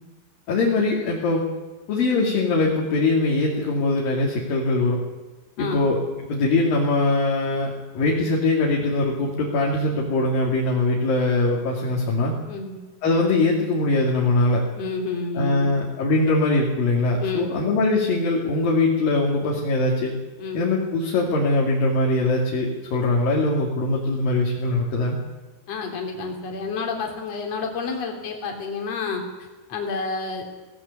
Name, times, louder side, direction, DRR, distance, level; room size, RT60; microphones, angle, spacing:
voice 1, 0.5-1.4 1.9-5.0 5.6-6.0 6.3-12.4 13.0-14.6 15.4-20.1 20.5-25.2, left 2 dB, 60° left, -3 dB, 4.3 m, -22 dB
voice 2, 5.6-5.9 12.5-12.8 14.8-15.8 17.2-17.6 20.4-20.6 25.7-29.2 29.7-30.4, left 4 dB, 40° left, 2 dB, 4.0 m, -29 dB
18.0 x 18.0 x 8.5 m, 1.2 s
omnidirectional pair, 4.8 m